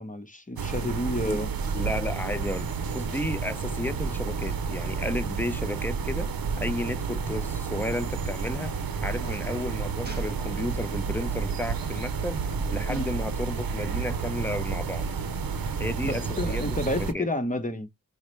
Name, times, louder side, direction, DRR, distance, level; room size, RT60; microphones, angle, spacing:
voice 1, 0.0-1.5 9.2-9.3 12.9-13.1 16.0-17.9, left 1 dB, 20° left, 0.9 m, -30 dB
sound 1, 0.6-17.1, right 5 dB, 80° right, 0.7 m, -30 dB
voice 2, 1.7-2.7 2.9-6.3 6.6-8.7 9.0-15.0 15.8-16.8 17.1-17.3, left 1 dB, 5° left, 0.5 m, -33 dB
Gunshot gunfire, 8.4-8.5 10.0-11.1 11.9-12.1, right 2 dB, 30° right, 1.2 m, -46 dB
4.7 x 2.2 x 3.2 m
cardioid pair, 50°, 35 cm